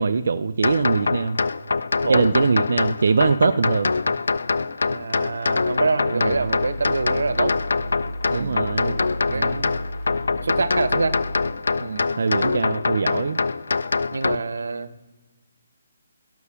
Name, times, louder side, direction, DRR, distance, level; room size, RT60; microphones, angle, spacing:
voice 1, 0.0-1.4 2.1-3.9 6.1-6.4 8.3-8.9 9.3-9.7 12.2-13.4, right 4 dB, 60° right, 9 dB, 0.5 m, -22 dB
sound 1, 0.6-14.4, left 4 dB, 85° left, 0.5 m, -24 dB
voice 2, 4.9-7.6 8.3-9.6 10.3-11.2 11.8-12.1 14.1-14.9, right 3 dB, 85° right, 13 dB, 0.9 m, -26 dB
sound 2, 6.2-11.5, equal, 20° left, 2.6 m, -33 dB
12.0 x 6.9 x 8.2 m, 1.1 s
hypercardioid pair, 175°, 0 cm